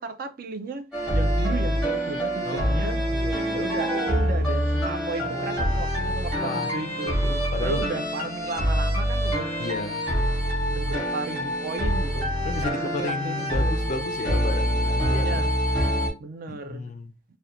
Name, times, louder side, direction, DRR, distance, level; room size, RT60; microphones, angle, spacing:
voice 1, 0.0-3.0 3.5-7.2 7.6-9.5 10.7-12.7 13.0-13.9 15.2-15.5 16.2-16.9, right 3 dB, 50° right, 0.3 m, -34 dB
sound 1, 0.9-16.1, equal, 5° right, 0.9 m, -25 dB
voice 2, 2.4-3.7 5.3-5.7 6.4-6.7 7.0-7.8 9.6-10.0 10.9-11.1 12.4-15.4 16.5-17.1, left 3 dB, 40° left, 0.3 m, -33 dB
2.4 x 2.1 x 2.7 m
head